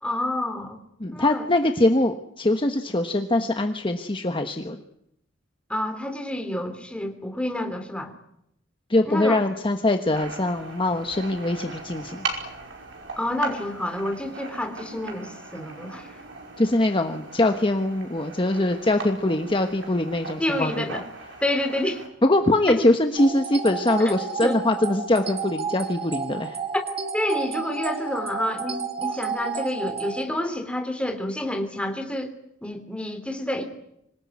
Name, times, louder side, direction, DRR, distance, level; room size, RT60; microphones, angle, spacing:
voice 1, 0.0-0.8 1.1-1.5 5.7-8.1 9.1-9.4 13.2-16.1 20.4-21.1 21.4-22.0 22.7-22.8 24.0-24.1 24.4-24.6 27.1-32.3 32.6-33.6, left 1 dB, 5° left, 5 dB, 3.2 m, -28 dB
voice 2, 1.0-4.8 8.9-12.3 16.6-21.0 22.2-26.6, left 1 dB, 25° left, 6 dB, 1.3 m, -23 dB
sound 1, 10.1-22.1, right 3 dB, 70° right, 5.4 m, -38 dB
sound 2, 23.2-30.3, right 5 dB, 30° right, 2.2 m, -31 dB
26.0 x 18.0 x 9.7 m, 0.79 s
head